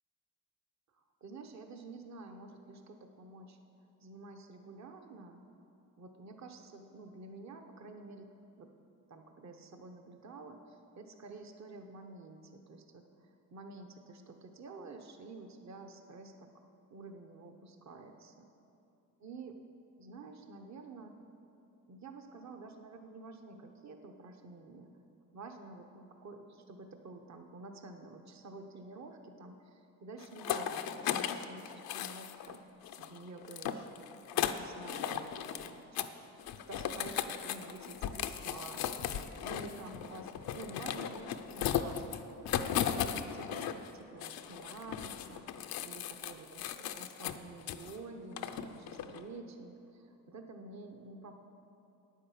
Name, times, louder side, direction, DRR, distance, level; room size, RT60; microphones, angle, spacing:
voice 1, 1.2-3.6 4.0-5.4 6.0-8.3 8.6-8.7 9.1-16.5 16.9-18.5 19.2-19.6 20.0-21.1 21.9-25.0 25.3-32.7 33.0-33.9 34.3-36.3 36.7-39.1 39.4-42.2 42.6-45.5 45.8-51.3, right 3 dB, 50° right, 5 dB, 1.1 m, -50 dB
sound 1, 30.2-32.6 32.8-35.7 36.0-36.1 36.4-43.9 44.2-48.0 48.4-49.2, left 9 dB, 85° left, 0.6 m, -37 dB
9.8 x 9.3 x 7.4 m, 2.8 s
cardioid pair, 70°, 35 cm